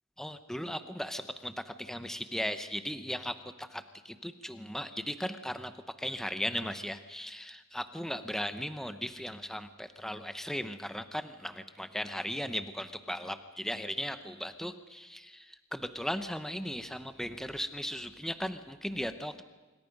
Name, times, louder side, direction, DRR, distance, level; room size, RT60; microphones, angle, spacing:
voice 1, 0.2-5.7 6.0-19.4, equal, ahead, 9 dB, 0.9 m, -37 dB
26.0 x 25.0 x 5.4 m, 1.2 s
head